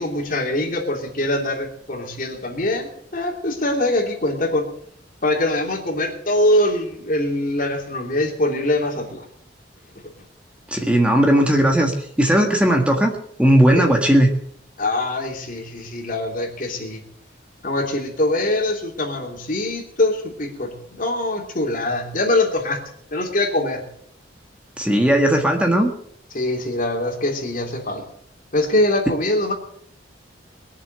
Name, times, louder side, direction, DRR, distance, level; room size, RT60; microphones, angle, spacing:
voice 1, 0.0-4.7 5.2-9.2 13.7-13.9 14.8-17.0 17.6-20.7 21.0-22.8 23.1-23.8 26.3-28.0 28.5-29.5, left 1 dB, 45° left, 1 dB, 3.0 m, -23 dB
voice 2, 10.7-13.1 13.4-14.3 24.8-25.9, right 1 dB, 5° right, 2 dB, 1.5 m, -17 dB
21.5 x 7.2 x 7.8 m, 0.71 s
head